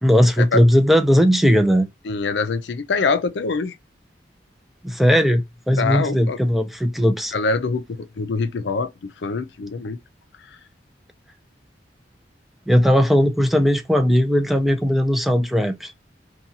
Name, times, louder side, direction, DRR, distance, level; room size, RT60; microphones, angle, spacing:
voice 1, 0.0-1.9 4.8-7.4 12.7-15.9, equal, ahead, 0.3 m, -18 dB
voice 2, 2.1-3.7 5.8-6.4 7.3-8.9 9.2-10.0, left 4 dB, 75° left, 0.4 m, -24 dB
2.6 x 2.3 x 2.7 m
head